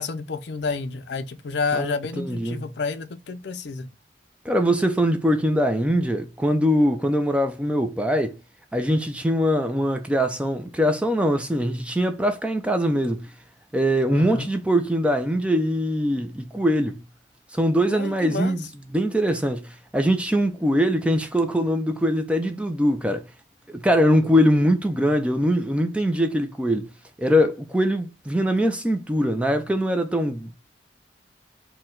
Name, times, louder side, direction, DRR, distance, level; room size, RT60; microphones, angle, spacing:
voice 1, 0.0-3.9 14.1-14.5 17.9-18.6, left 4 dB, 65° left, 0.4 m, -30 dB
voice 2, 1.7-2.7 4.4-8.3 8.7-13.3 13.7-17.0 17.5-18.7 18.9-23.2 23.7-26.9 27.2-30.5, equal, 5° right, 0.3 m, -22 dB
4.4 x 2.2 x 3.7 m
head